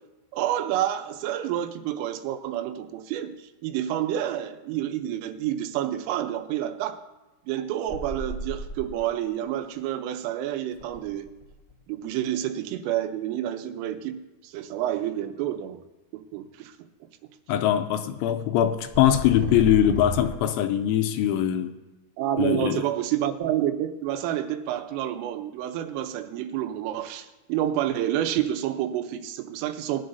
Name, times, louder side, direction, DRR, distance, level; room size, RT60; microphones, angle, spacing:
voice 1, 0.3-7.0 7.5-11.3 11.9-15.8 16.1-16.8 22.2-30.0, right 11 dB, 85° right, 3.4 m, -29 dB
sound 1, 7.9-9.1 10.8-11.7 18.6-20.3, right 3 dB, 10° right, 0.5 m, -33 dB
voice 2, 17.5-21.8 22.4-22.8, left 11 dB, 85° left, 2.7 m, -22 dB
20.0 x 11.5 x 2.7 m
omnidirectional pair, 5.7 m